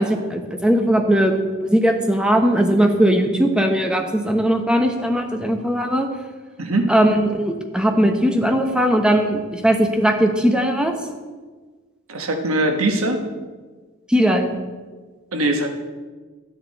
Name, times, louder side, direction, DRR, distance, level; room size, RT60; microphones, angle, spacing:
voice 1, 0.0-6.1 6.9-10.9 14.1-14.5, equal, 5° right, 4 dB, 1.0 m, -19 dB
voice 2, 6.6-6.9 12.1-13.2 15.3-15.7, right 1 dB, 85° right, 4 dB, 1.3 m, -21 dB
12.5 x 9.8 x 4.2 m, 1.4 s
head